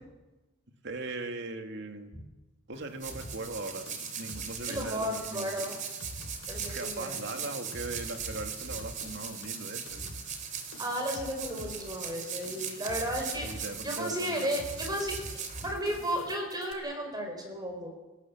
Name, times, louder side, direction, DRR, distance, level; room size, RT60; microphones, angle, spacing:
voice 1, 0.8-2.1 2.7-3.9 4.1-5.5 6.7-10.1 13.3-14.5, right 2 dB, 55° right, 5 dB, 2.4 m, -39 dB
sound 1, 2.7-16.3, right 7 dB, 35° right, 3.0 m, -40 dB
sound 2, 3.0-16.7, left 1 dB, 65° left, 3.9 m, -46 dB
voice 2, 4.7-5.7 6.5-7.2 10.8-13.5 13.8-15.1 15.6-17.9, equal, 20° right, 3 dB, 5.1 m, -33 dB
29.5 x 17.0 x 7.4 m, 1.1 s
head